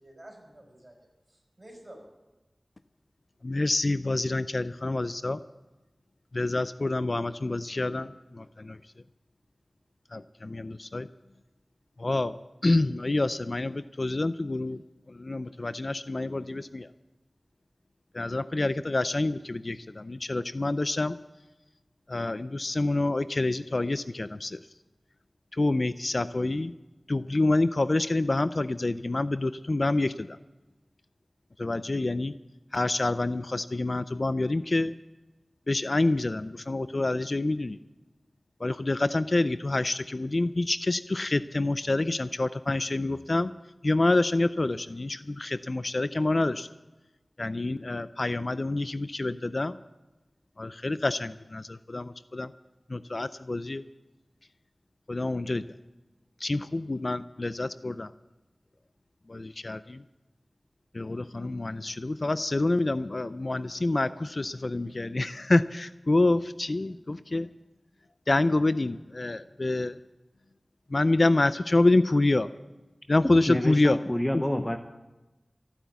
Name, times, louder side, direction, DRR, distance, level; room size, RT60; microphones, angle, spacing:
voice 1, 0.0-2.1, right 1 dB, 30° right, 2 dB, 5.0 m, -50 dB
voice 2, 3.4-5.4 6.3-8.8 10.1-11.1 12.0-14.8 15.1-16.9 18.1-21.2 22.1-24.6 25.5-26.7 27.1-30.4 31.6-32.4 32.7-34.9 35.7-37.8 38.6-43.5 43.8-46.7 47.4-49.8 50.6-52.5 52.9-53.8 55.1-55.6 56.4-58.1 59.3-60.0 60.9-67.5 68.3-70.0 70.9-72.5 73.1-74.0 74.3-74.6, left 2 dB, 50° left, 13 dB, 0.4 m, -27 dB
voice 3, 73.2-74.8, left 1 dB, 15° left, 6 dB, 0.8 m, -28 dB
14.5 x 10.0 x 8.2 m, 1.1 s
wide cardioid pair, 75°, 0 cm